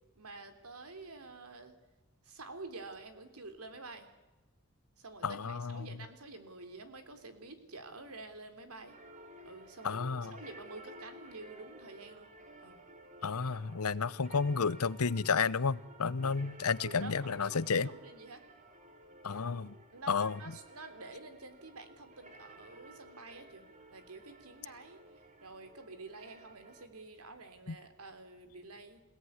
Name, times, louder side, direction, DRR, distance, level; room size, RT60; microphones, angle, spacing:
voice 1, 0.2-1.7 2.2-4.1 5.0-9.0 9.4-12.3 12.6-12.8 16.8-18.4 19.9-29.0, right 3 dB, 85° right, 8 dB, 3.5 m, -49 dB
voice 2, 5.2-5.9 9.8-10.3 13.2-17.9 19.2-19.7 20.1-20.4, left 5 dB, 90° left, 19 dB, 0.8 m, -31 dB
sound 1, 8.9-26.9, right 1 dB, 35° right, 3.0 m, -55 dB
28.0 x 17.5 x 9.7 m, 1.1 s
head